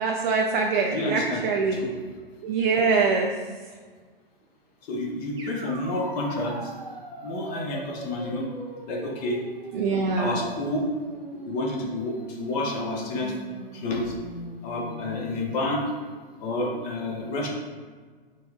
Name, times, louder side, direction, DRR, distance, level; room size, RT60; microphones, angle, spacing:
voice 1, 0.0-1.9 2.4-3.3 9.7-10.4, right 4 dB, 55° right, 1 dB, 0.5 m, -24 dB
voice 2, 0.9-1.4 1.7-1.9 4.9-6.6 7.2-8.5 8.9-9.4 10.2-10.8 11.3-13.3 13.7-14.1 14.6-15.8 16.4-17.5, left 2 dB, 40° left, 0 dB, 0.9 m, -29 dB
sound 1, 5.4-15.3, right 1 dB, 15° right, 0.8 m, -40 dB
4.4 x 2.3 x 4.7 m, 1.5 s
hypercardioid pair, 115°, 30 cm